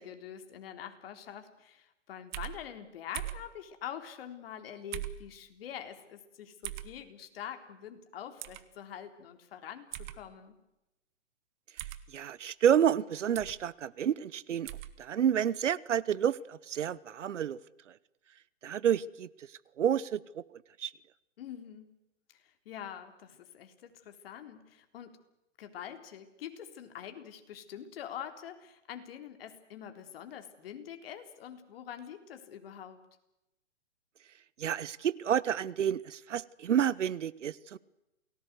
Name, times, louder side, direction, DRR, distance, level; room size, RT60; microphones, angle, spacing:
voice 1, 0.0-10.6 21.4-22.0 22.3-25.2 25.6-33.0, left 9 dB, 50° left, 7 dB, 3.6 m, -45 dB
sound 1, 2.3-2.6 3.1-3.5 4.9-5.2 6.6-6.9 8.4-8.6 9.9-10.2 11.8-12.0 13.3-13.6 14.6-14.9, right 14 dB, 40° right, 1.6 m, -39 dB
voice 2, 12.1-14.7 15.0-17.6 18.6-19.5 19.8-20.4 20.8-20.9 34.6-37.8, right 9 dB, 75° right, 21 dB, 1.1 m, -29 dB
28.5 x 19.0 x 8.1 m, 0.93 s
hypercardioid pair, 140°, 37 cm